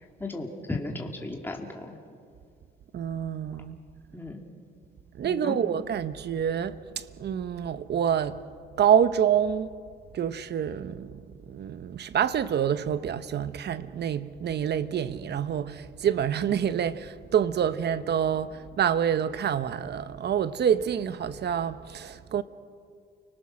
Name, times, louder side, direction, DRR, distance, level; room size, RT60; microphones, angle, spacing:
voice 1, 0.2-2.0 4.1-4.4 5.2-5.6, left 2 dB, 10° left, 2.5 m, -35 dB
voice 2, 2.9-3.8 5.1-8.4 8.8-9.7 10.1-22.4, right 8 dB, 55° right, 1.0 m, -27 dB
29.5 x 19.5 x 6.4 m
cardioid pair, 90°, 20 cm